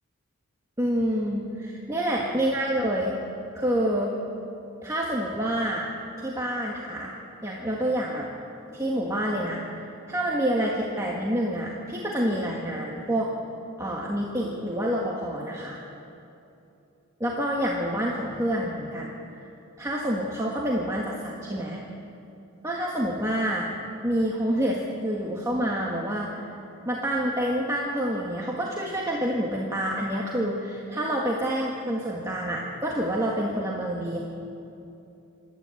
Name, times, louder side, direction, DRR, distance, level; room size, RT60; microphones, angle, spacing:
voice 1, 0.8-3.1 3.5-4.1 4.8-5.9 6.2-7.1 7.4-8.3 8.7-13.3 13.8-15.8 17.2-19.2 19.8-21.8 22.6-23.7 24.0-26.4 26.8-34.2, equal, 15° right, -3 dB, 1.7 m, -27 dB
27.5 x 12.5 x 8.5 m, 2.8 s
head